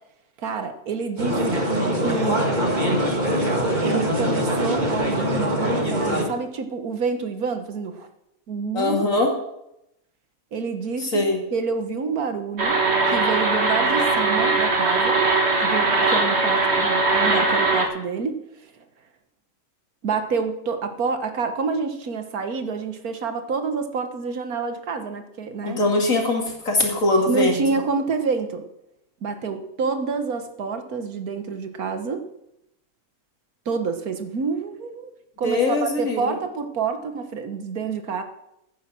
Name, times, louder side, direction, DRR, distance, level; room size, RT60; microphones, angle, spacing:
voice 1, 0.4-1.6 2.0-2.5 3.8-8.1 8.5-9.1 10.5-11.3 11.5-12.8 13.1-15.2 15.6-18.4 20.0-25.8 27.3-28.6 29.2-32.3 33.7-35.1 35.4-38.2, right 5 dB, 85° right, 8 dB, 1.8 m, -28 dB
sound 1, 1.2-6.2, equal, 30° right, 2.1 m, -23 dB
voice 2, 8.7-9.3 11.0-11.4 25.6-27.6 35.4-36.4, left 2 dB, 65° left, 1 dB, 2.9 m, -22 dB
sound 2, 12.6-17.9, right 3 dB, 45° right, 2.0 m, -20 dB
14.5 x 9.5 x 6.1 m, 0.84 s
omnidirectional pair, 1.5 m